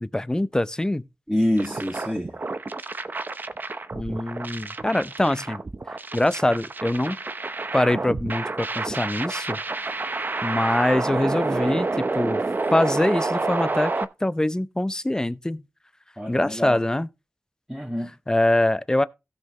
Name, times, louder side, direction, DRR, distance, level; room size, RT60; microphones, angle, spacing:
voice 1, 0.0-1.0 3.9-5.6 6.1-7.2 7.7-9.6 10.4-12.4 12.7-15.6 16.3-17.1 18.3-19.0, left 1 dB, 15° left, 0.5 m, -24 dB
voice 2, 1.3-2.4 16.2-16.8 17.7-18.1, left 1 dB, ahead, 1.7 m, -26 dB
sound 1, 1.6-14.0, right 3 dB, 40° right, 0.7 m, -29 dB
16.5 x 5.8 x 3.1 m
wide cardioid pair, 80°, 5 cm